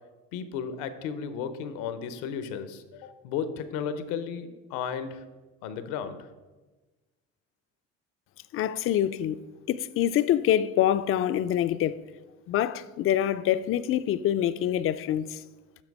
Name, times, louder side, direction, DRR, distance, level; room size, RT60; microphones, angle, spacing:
voice 1, 0.3-5.2 5.6-6.2, left 7 dB, 85° left, 0.8 m, -34 dB
voice 2, 8.5-9.4 9.7-12.0 12.5-15.4, left 11 dB, 45° left, 0.4 m, -25 dB
7.4 x 5.8 x 4.7 m
supercardioid pair, 100°, 30 cm